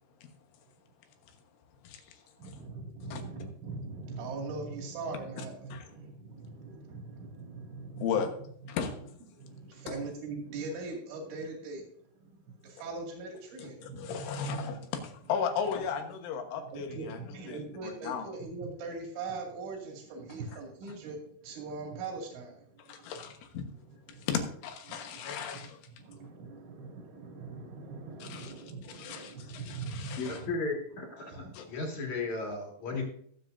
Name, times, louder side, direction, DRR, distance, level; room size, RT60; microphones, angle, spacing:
voice 1, 1.8-2.6 3.1-3.2 5.7-5.9 8.0-8.3 8.7-9.0 9.9-10.0 13.6-17.2 17.5-17.6 18.0-18.3 22.9-23.7 24.2-25.8 28.2-28.5 28.9-30.4 31.5-31.7, left 7 dB, 90° left, 5 dB, 3.9 m, -35 dB
voice 2, 2.4-6.1 6.6-8.3 9.8-11.8 12.8-14.2 16.7-21.2 21.4-22.5 24.9-25.0 26.1-30.5, right 3 dB, 80° right, 0 dB, 4.7 m, -40 dB
voice 3, 30.2-33.0, left 3 dB, 45° left, 0 dB, 2.7 m, -35 dB
22.5 x 7.6 x 2.6 m, 0.63 s
omnidirectional pair, 5.4 m